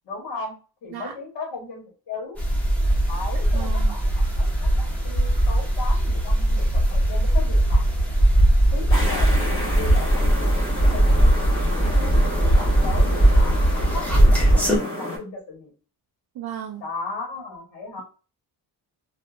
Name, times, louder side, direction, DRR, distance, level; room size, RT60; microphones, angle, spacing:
voice 1, 0.0-0.6 0.8-2.4 3.1-7.8 8.7-11.3 11.7-13.6 13.9-15.7 16.8-18.0, left 3 dB, 75° left, -1 dB, 1.3 m, -36 dB
sound 1, 2.4-14.8, right 1 dB, 5° left, 0.6 m, -19 dB
voice 2, 3.5-3.9 16.4-16.8, right 10 dB, 60° right, 1 dB, 0.5 m, -34 dB
sound 2, 8.9-15.2, left 1 dB, 30° left, 1.2 m, -31 dB
2.7 x 2.2 x 2.3 m, 0.35 s
wide cardioid pair, 160°, 43 cm